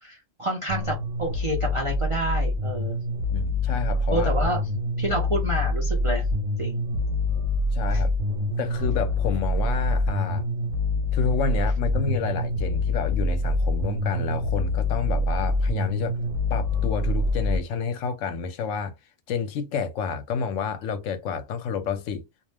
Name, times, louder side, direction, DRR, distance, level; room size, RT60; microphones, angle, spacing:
voice 1, 0.0-3.0 4.1-4.6 5.0-6.2 6.6-6.8, right 1 dB, 45° right, 0.4 m, -28 dB
sound 1, 0.7-17.6, left 2 dB, 75° right, 0.9 m, -25 dB
voice 2, 3.3-4.3 7.7-8.1 8.6-10.5 11.1-16.1 16.5-18.9 19.3-22.2, left 5 dB, 80° left, 0.9 m, -29 dB
2.4 x 2.0 x 3.2 m
omnidirectional pair, 1.3 m